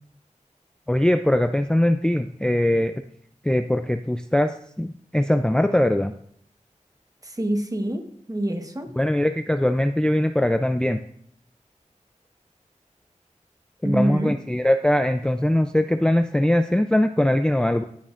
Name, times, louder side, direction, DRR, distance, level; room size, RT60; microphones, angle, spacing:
voice 1, 0.9-3.0 3.4-6.1 9.0-11.0 13.8-17.8, left 1 dB, 5° left, 8 dB, 0.4 m, -21 dB
voice 2, 7.2-8.9 13.8-14.3, right 1 dB, 25° right, 6 dB, 1.2 m, -26 dB
15.5 x 8.6 x 2.5 m, 0.66 s
wide cardioid pair, 65°, 13 cm